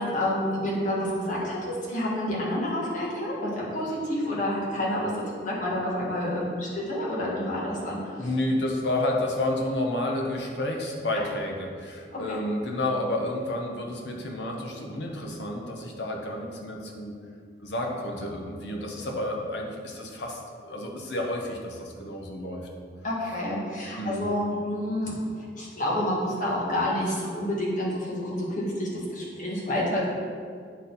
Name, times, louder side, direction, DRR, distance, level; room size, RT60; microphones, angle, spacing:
voice 1, 0.0-1.6 1.9-8.0 12.1-12.2 23.0-25.1 25.6-30.1, left 1 dB, 45° left, -6 dB, 1.8 m, -28 dB
voice 2, 8.2-17.1 17.6-22.7 24.0-24.2, left 1 dB, 70° left, 1 dB, 1.0 m, -30 dB
9.1 x 4.3 x 4.0 m, 2.1 s
head